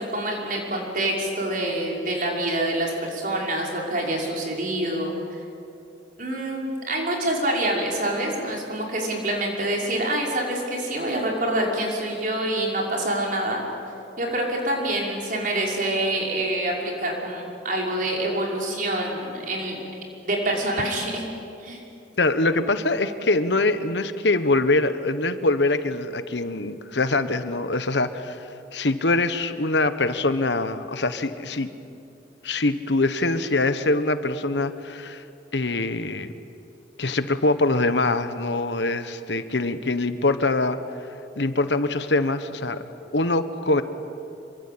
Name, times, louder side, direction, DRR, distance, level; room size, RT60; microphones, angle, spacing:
voice 1, 0.0-5.1 6.2-13.6 14.2-19.8 20.2-21.2 21.6-21.8, right 1 dB, 50° right, -1 dB, 5.8 m, -26 dB
voice 2, 22.2-28.4 28.7-31.7 32.4-35.2 35.5-36.3 37.0-40.8 41.4-42.8 43.1-43.8, left 2 dB, 75° left, 10 dB, 1.3 m, -23 dB
26.5 x 24.0 x 8.8 m, 2.6 s
head